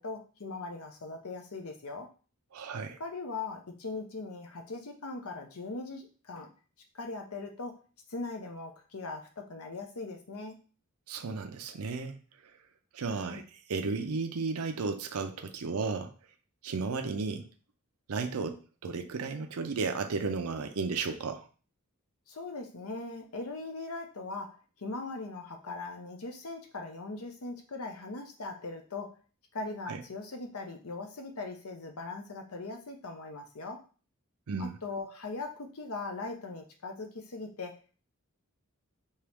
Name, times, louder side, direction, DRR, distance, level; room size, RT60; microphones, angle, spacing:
voice 1, 0.0-2.1 3.0-6.5 6.9-7.8 8.1-10.6 13.1-13.4 22.3-29.2 29.5-33.8 34.6-38.0, left 3 dB, 75° left, 4 dB, 0.9 m, -40 dB
voice 2, 2.5-3.0 11.1-12.2 12.9-16.1 16.6-17.5 18.1-21.4 29.9-30.0 34.5-34.8, right 4 dB, 80° right, 6 dB, 0.5 m, -34 dB
4.5 x 3.0 x 3.5 m, 0.37 s
head